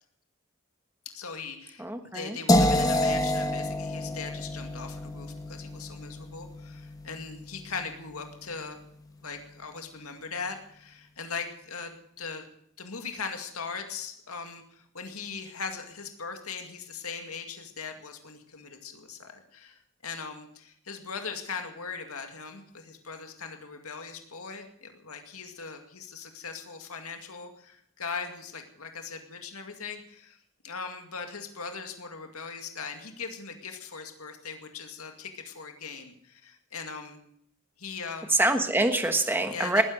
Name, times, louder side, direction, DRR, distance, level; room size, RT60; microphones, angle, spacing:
voice 1, 1.1-8.8 9.2-12.5 12.8-30.4 30.6-37.2 37.8-38.3 39.5-39.8, left 5 dB, 90° left, 5 dB, 2.3 m, -39 dB
voice 2, 1.8-2.4 38.3-39.8, right 2 dB, 10° right, 6 dB, 1.3 m, -25 dB
sound 1, 2.5-8.4, left 1 dB, 15° left, 1.2 m, -28 dB
20.0 x 10.5 x 6.5 m, 0.69 s
head